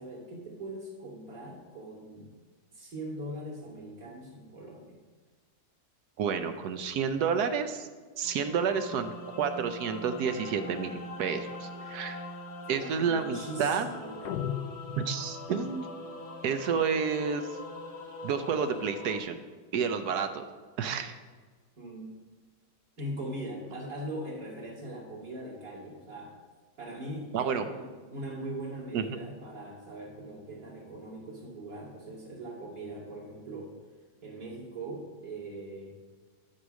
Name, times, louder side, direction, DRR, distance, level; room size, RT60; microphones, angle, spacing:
voice 1, 0.0-2.3 2.7-5.0 12.7-14.4 21.8-22.1 23.0-26.3 26.8-33.7 34.2-35.9, right 1 dB, 55° right, -3 dB, 2.9 m, -41 dB
voice 2, 6.2-7.9 8.2-12.2 12.7-13.9 15.0-15.9 16.4-17.5 18.2-19.4 19.7-20.4 20.8-21.2 27.3-27.7 28.9-29.0, right 6 dB, 70° right, 9 dB, 1.1 m, -30 dB
sound 1, 8.2-19.2, left 2 dB, 25° left, 1.0 m, -43 dB
sound 2, 14.2-15.7, left 9 dB, 70° left, 0.9 m, -36 dB
11.5 x 4.8 x 6.3 m, 1.5 s
omnidirectional pair, 1.9 m